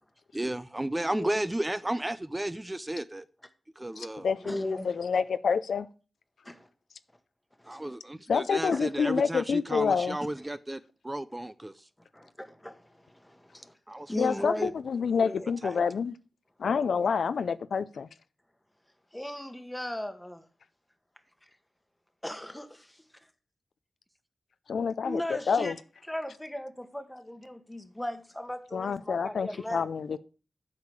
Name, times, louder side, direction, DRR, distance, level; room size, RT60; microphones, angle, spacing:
voice 1, 0.3-3.3 3.8-4.3 7.7-11.8 13.9-14.7 15.6-15.8, right 1 dB, 20° right, 0.4 m, -33 dB
voice 2, 1.1-1.4 4.4-4.9 6.4-6.7 7.6-8.0 8.7-8.8 12.1-13.7 14.1-14.7 15.2-15.5 19.1-20.5 22.2-23.0 25.0-25.7 26.1-29.9, left 1 dB, 10° left, 1.3 m, -37 dB
voice 3, 4.0-5.9 8.3-10.2 14.2-16.1 16.6-18.1 24.7-25.7 28.7-30.2, left 6 dB, 90° left, 0.4 m, -28 dB
8.3 x 5.0 x 6.7 m
wide cardioid pair, 70°, 0 cm